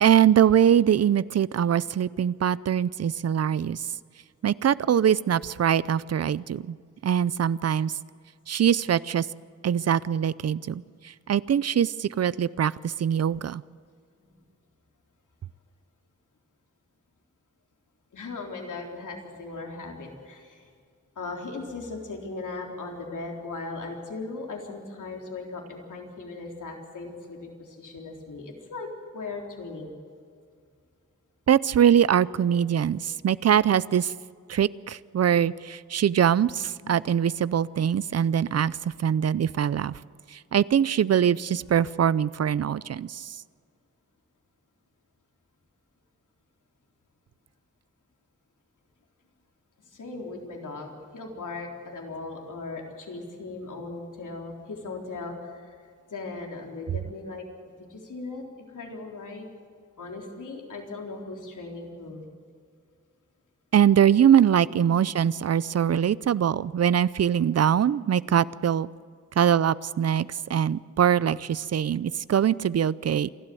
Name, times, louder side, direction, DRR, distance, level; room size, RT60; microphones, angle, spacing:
voice 1, 0.0-3.9 4.4-6.8 7.0-7.9 8.5-9.3 9.6-13.6 31.5-34.1 34.5-40.0 40.3-43.4 63.7-68.9 69.4-73.3, right 9 dB, 55° right, 20 dB, 0.5 m, -23 dB
voice 2, 18.1-20.7 21.2-28.9 29.1-30.0 36.8-36.9 49.9-55.7 56.1-57.4 57.9-58.4 58.7-59.5 60.0-62.3 64.7-65.0, left 3 dB, 80° left, 1 dB, 3.8 m, -38 dB
28.0 x 12.0 x 7.7 m, 2.2 s
wide cardioid pair, 130°, 30 cm